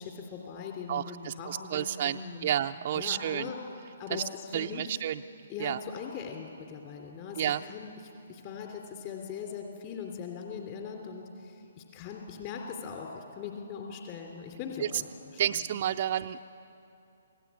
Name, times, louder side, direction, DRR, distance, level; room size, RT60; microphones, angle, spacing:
voice 1, 0.0-2.5 3.0-3.6 4.0-5.0 5.5-7.9 8.3-15.1 15.7-15.8, left 6 dB, 35° left, 2 dB, 3.1 m, -40 dB
voice 2, 0.9-3.5 4.1-4.2 4.5-5.2 5.6-5.8 7.4-7.6 14.8-14.9 15.4-16.5, right 11 dB, 45° right, 5 dB, 0.5 m, -31 dB
27.0 x 17.5 x 8.4 m, 2.8 s
figure-of-eight pair, 135°, 0 cm